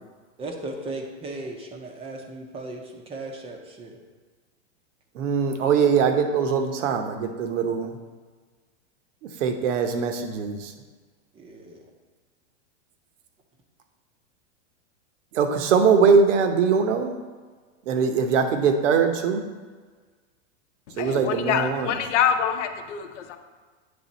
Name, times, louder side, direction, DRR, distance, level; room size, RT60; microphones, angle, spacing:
voice 1, 0.4-4.0 11.3-11.8, right 2 dB, 15° right, 2 dB, 0.5 m, -36 dB
voice 2, 5.1-8.0 9.4-10.7 15.3-17.1 17.9-19.4 21.0-21.9, right 6 dB, 75° right, 6 dB, 0.9 m, -21 dB
voice 3, 20.9-23.4, left 8 dB, 70° left, 7 dB, 0.7 m, -25 dB
8.7 x 3.5 x 4.0 m, 1.5 s
supercardioid pair, 140°, 37 cm